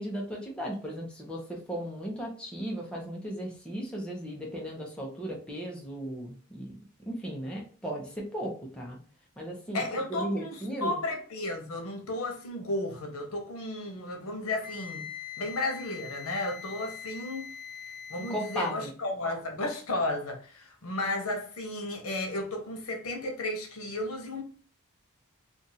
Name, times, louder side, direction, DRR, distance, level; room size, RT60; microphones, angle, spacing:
voice 1, 0.0-6.8 7.1-9.0 9.4-11.0 18.2-18.9, equal, 5° left, 0.7 m, -36 dB
voice 2, 9.7-15.1 15.4-24.4, left 2 dB, 85° left, 0.9 m, -34 dB
Wind instrument woodwind instrument, 14.6-18.8, left 8 dB, 40° left, 0.6 m, -43 dB
2.6 x 2.5 x 4.1 m
head